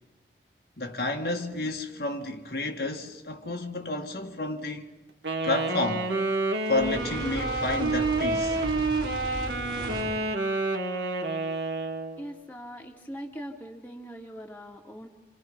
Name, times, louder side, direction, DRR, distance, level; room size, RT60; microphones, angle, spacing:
voice 1, 0.8-4.9 5.4-6.1 6.7-8.6, left 2 dB, 60° left, 1.8 m, -31 dB
Wind instrument woodwind instrument, 5.2-12.2, right 3 dB, 75° right, 2.4 m, -29 dB
Fire, 6.7-10.3, equal, 25° right, 2.7 m, -36 dB
voice 2, 12.2-15.1, equal, 10° left, 2.5 m, -41 dB
28.0 x 28.0 x 5.6 m
head